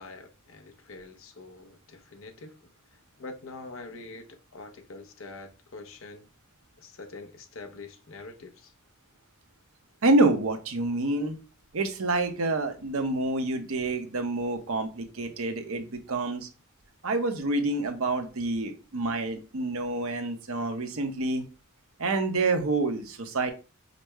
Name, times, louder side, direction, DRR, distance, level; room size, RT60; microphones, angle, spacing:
voice 1, 0.0-6.3 6.8-8.7, left 3 dB, 70° left, 0.7 m, -45 dB
voice 2, 10.0-11.4 11.7-16.5 17.0-21.4 22.0-23.5, right 2 dB, 75° right, 0.8 m, -27 dB
5.1 x 2.1 x 4.5 m
head